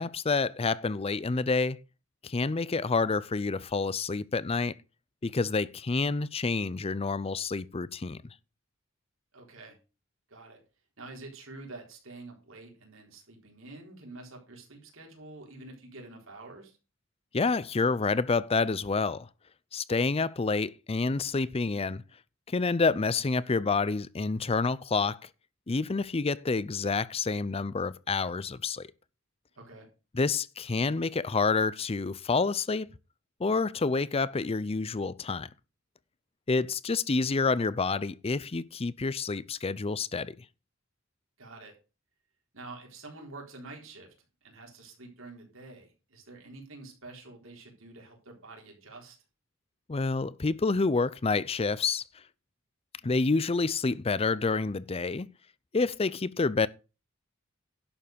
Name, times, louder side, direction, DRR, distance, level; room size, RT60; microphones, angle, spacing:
voice 1, 0.0-1.8 2.2-4.7 5.2-8.2 17.3-19.3 19.7-22.0 22.5-25.2 25.7-28.9 30.1-32.9 33.4-35.5 36.5-40.4 49.9-52.0 53.0-55.3 55.7-56.7, left 4 dB, 30° left, 0.5 m, -28 dB
voice 2, 9.3-9.8 10.3-10.6 11.0-16.8 29.6-29.9 41.4-41.7 42.5-44.1 44.4-49.2, right 2 dB, 70° right, 3.9 m, -47 dB
11.0 x 7.0 x 5.2 m
head